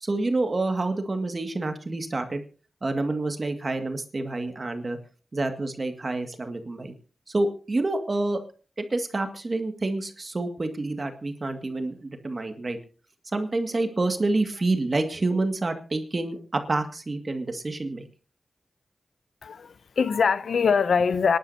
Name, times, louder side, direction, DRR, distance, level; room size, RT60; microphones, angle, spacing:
voice 1, 0.0-2.4 2.8-5.0 5.3-6.9 7.3-8.4 8.8-12.8 13.3-18.1, right 2 dB, 45° right, 2.0 m, -28 dB
voice 2, 19.4-21.4, left 6 dB, 85° left, 0.6 m, -23 dB
26.0 x 11.5 x 2.8 m
cardioid pair, 60°, 0 cm